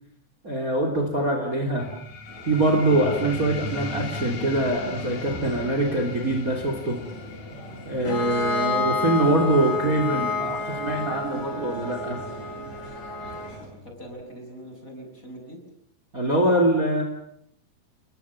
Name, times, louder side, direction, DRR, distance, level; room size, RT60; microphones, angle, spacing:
voice 1, 0.4-1.9 2.5-7.0 7.9-12.2 16.1-17.0, right 1 dB, 25° right, 3 dB, 3.6 m, -23 dB
sound 1, 1.8-12.8, left 5 dB, 65° left, 3.3 m, -39 dB
sound 2, 2.3-13.7, right 1 dB, 55° right, 9.2 m, -43 dB
Bowed string instrument, 8.0-13.6, left 3 dB, 90° left, 7.3 m, -29 dB
voice 2, 10.3-11.7 13.7-15.6, right 1 dB, 25° left, 3 dB, 7.0 m, -41 dB
30.0 x 22.0 x 7.4 m, 0.69 s
omnidirectional pair, 3.7 m